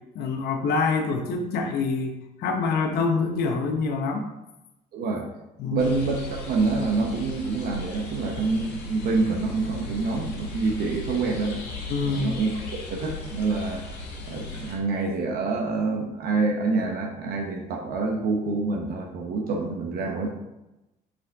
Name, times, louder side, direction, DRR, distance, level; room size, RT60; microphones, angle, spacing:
voice 1, 0.1-4.3 5.6-5.9 11.9-12.4, left 4 dB, 70° left, 3 dB, 0.9 m, -26 dB
voice 2, 4.9-5.3 5.7-11.6 12.0-13.8 14.3-20.4, right 3 dB, 65° right, 1 dB, 1.1 m, -27 dB
sound 1, 5.8-14.8, left 1 dB, 85° left, 1.4 m, -37 dB
5.6 x 5.5 x 3.5 m, 0.94 s
cardioid pair, 110°, 17 cm